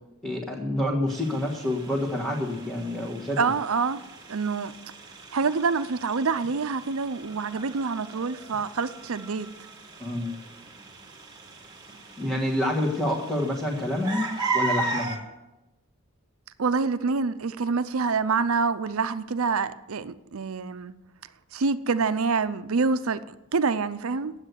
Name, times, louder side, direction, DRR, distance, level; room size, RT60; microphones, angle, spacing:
voice 1, 0.2-3.4 10.0-10.3 12.2-15.2, left 1 dB, 5° left, 1.5 m, -28 dB
sound 1, 1.1-15.2, right 3 dB, 20° right, 1.6 m, -37 dB
voice 2, 3.4-4.0 4.3-4.7 5.3-9.5 16.6-20.9 21.5-23.2 23.5-24.3, right 4 dB, 80° right, 0.6 m, -26 dB
9.9 x 8.1 x 9.6 m
head